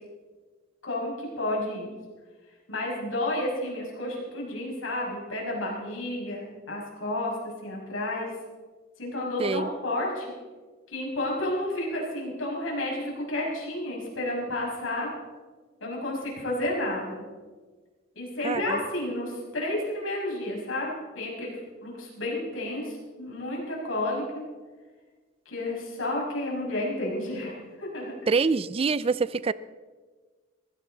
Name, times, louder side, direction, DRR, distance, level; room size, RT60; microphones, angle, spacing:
voice 1, 0.8-1.9 2.7-7.3 7.6-8.3 9.0-10.3 10.9-15.1 15.8-17.2 18.1-24.4 25.5-28.2, left 1 dB, 85° left, -3 dB, 6.0 m, -31 dB
voice 2, 18.4-18.8 28.3-29.5, right 4 dB, 30° right, 18 dB, 0.4 m, -25 dB
20.5 x 16.0 x 3.9 m, 1.4 s
head